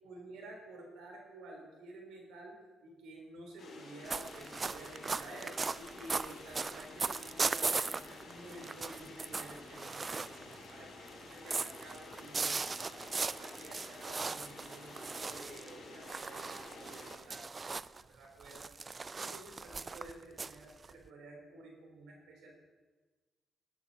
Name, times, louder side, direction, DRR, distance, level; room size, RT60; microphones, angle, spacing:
voice 1, 0.0-12.6 12.9-18.6 19.2-22.6, right 2 dB, 85° right, 1 dB, 3.5 m, -51 dB
sound 1, 3.6-17.2, left 3 dB, 65° left, 5.0 m, -51 dB
sound 2, 4.1-10.7 11.1-18.0 18.4-21.1, right 4 dB, 30° right, 0.3 m, -38 dB
19.0 x 8.8 x 4.1 m, 1.3 s
cardioid pair, 90°, 0 cm